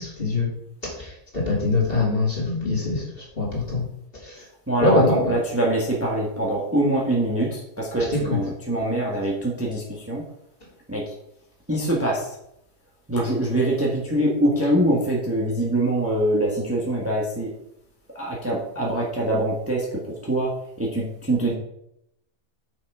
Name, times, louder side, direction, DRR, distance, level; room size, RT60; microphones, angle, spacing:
voice 1, 1.5-3.0 3.4-3.8 4.8-5.3, left 2 dB, 35° left, -4 dB, 2.8 m, -22 dB
voice 2, 4.7-10.2 10.9-11.1 11.7-12.3 13.1-17.5 18.1-20.5 20.8-21.5, right 1 dB, 10° right, -3 dB, 1.5 m, -24 dB
6.6 x 6.3 x 4.9 m, 0.77 s
omnidirectional pair, 1.7 m